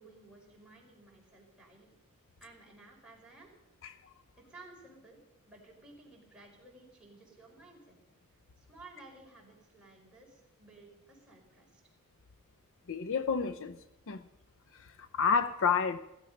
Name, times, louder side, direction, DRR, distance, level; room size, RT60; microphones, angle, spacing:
voice 1, 0.0-1.9 2.4-3.5 4.4-5.2 5.5-8.0 8.6-11.8, right 2 dB, 5° right, 4.9 m, -55 dB
voice 2, 12.9-13.8 14.1-14.2 14.7-16.0, left 6 dB, 60° left, 0.6 m, -30 dB
16.0 x 14.0 x 5.3 m
head